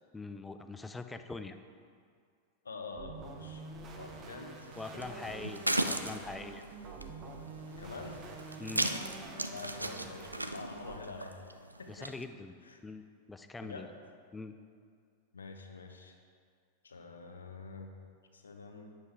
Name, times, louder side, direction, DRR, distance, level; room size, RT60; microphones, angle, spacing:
voice 1, 0.1-1.6 4.8-6.6 8.6-8.9 11.9-12.6 12.8-13.9 14.3-14.5, left 3 dB, 10° left, 9 dB, 0.5 m, -43 dB
voice 2, 2.6-3.6 3.9-5.5 7.7-8.2 9.5-11.4 11.8-12.1 12.6-12.8 13.6-13.9 15.3-16.2 16.8-17.9 18.3-18.9, left 4 dB, 75° left, 4 dB, 0.9 m, -47 dB
sound 1, 3.0-11.0, right 3 dB, 30° right, 1.1 m, -47 dB
sound 2, 4.6-12.2, right 1 dB, 85° right, 0.4 m, -38 dB
9.7 x 7.5 x 4.7 m, 2.2 s
figure-of-eight pair, 90°, 0 cm